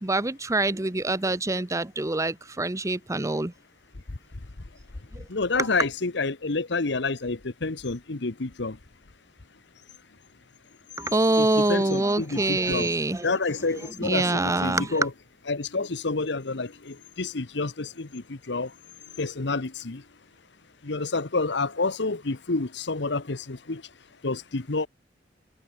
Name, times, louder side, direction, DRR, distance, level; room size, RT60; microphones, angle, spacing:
voice 1, 0.0-3.5 5.1-5.3 5.5-5.7 11.0-13.4 13.7-15.1, right 2 dB, 15° right, 0.8 m, -25 dB
voice 2, 5.3-8.8 11.4-12.9 13.2-15.1 15.5-18.7 19.2-20.0 20.8-23.8 24.2-24.9, left 3 dB, 70° left, 1.2 m, -29 dB
head